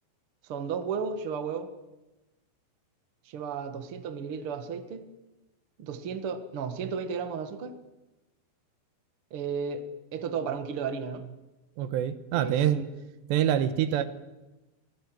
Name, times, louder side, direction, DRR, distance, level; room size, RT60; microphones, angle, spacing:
voice 1, 0.4-1.7 3.3-5.0 5.8-7.8 9.3-11.3 12.3-12.9 14.0-14.1, right 6 dB, 45° right, 9 dB, 1.9 m, -34 dB
voice 2, 11.8-12.8 13.3-14.1, right 10 dB, 85° right, 12 dB, 3.4 m, -25 dB
24.5 x 19.0 x 9.6 m, 1.1 s
omnidirectional pair, 4.9 m